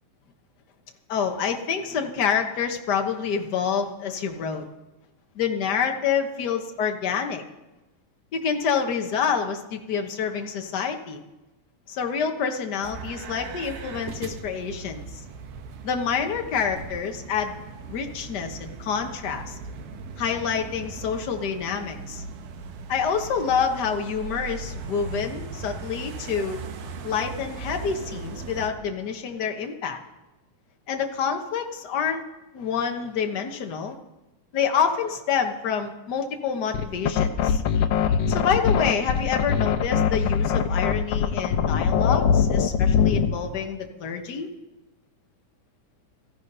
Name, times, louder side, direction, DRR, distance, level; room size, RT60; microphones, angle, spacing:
voice 1, 1.1-4.6 5.3-7.4 8.3-11.2 11.9-15.0 15.8-17.6 17.9-19.6 20.2-22.2 22.9-26.6 27.0-30.0 30.9-32.2 32.5-33.9 34.5-37.6 38.3-44.5, left 6 dB, 55° left, 4 dB, 1.2 m, -27 dB
sound 1, 12.8-28.7, right 4 dB, 85° right, 2.7 m, -38 dB
sound 2, 36.7-43.4, left 7 dB, 90° left, 2.3 m, -22 dB
16.5 x 14.5 x 5.5 m, 1.1 s
omnidirectional pair, 3.6 m